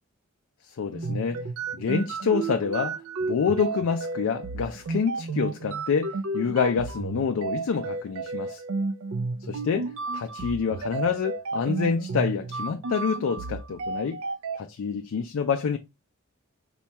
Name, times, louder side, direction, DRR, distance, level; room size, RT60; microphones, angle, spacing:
voice 1, 0.6-1.4 1.7-8.6 9.5-14.2 14.6-15.8, left 6 dB, 70° left, 0.4 m, -27 dB
sound 1, 0.9-14.6, right 4 dB, 70° right, 0.4 m, -32 dB
4.2 x 2.3 x 2.8 m
head